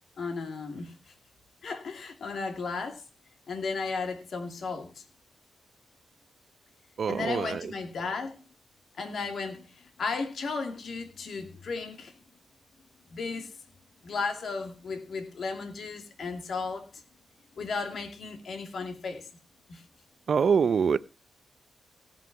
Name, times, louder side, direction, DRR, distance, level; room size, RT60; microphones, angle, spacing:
voice 1, 0.2-0.9 1.6-3.0 3.5-5.0 7.1-8.4 9.0-12.1 13.1-13.5 14.0-17.0 17.6-19.3 19.7-19.8, left 4 dB, 65° left, 2.6 m, -34 dB
voice 2, 7.0-7.6 20.3-21.0, right 6 dB, 60° right, 0.6 m, -24 dB
17.5 x 5.9 x 6.0 m
cardioid pair, 75°, 0 cm